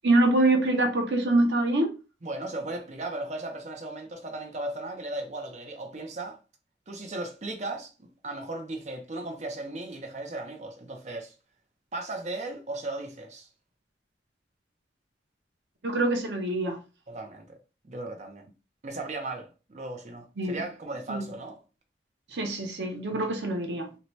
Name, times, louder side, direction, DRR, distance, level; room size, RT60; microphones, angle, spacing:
voice 1, 0.0-1.9 15.8-16.8 20.4-20.6 21.1-21.2 22.3-23.9, right 2 dB, 75° right, 0.7 m, -24 dB
voice 2, 2.2-6.4 6.9-11.3 11.9-13.5 17.1-17.6 17.8-18.5 18.8-21.6, right 2 dB, 40° right, 0.6 m, -36 dB
2.7 x 2.2 x 3.0 m
head